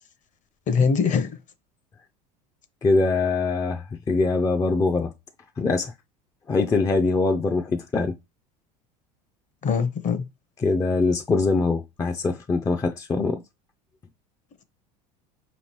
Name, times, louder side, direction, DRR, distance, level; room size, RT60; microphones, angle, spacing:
voice 1, 0.7-1.4 9.6-10.2, left 5 dB, 40° left, 0.7 m, -22 dB
voice 2, 2.8-5.1 5.6-5.9 6.5-8.1 10.6-13.4, left 3 dB, 15° left, 0.4 m, -23 dB
4.9 x 3.0 x 2.9 m
hypercardioid pair, 85°, 21 cm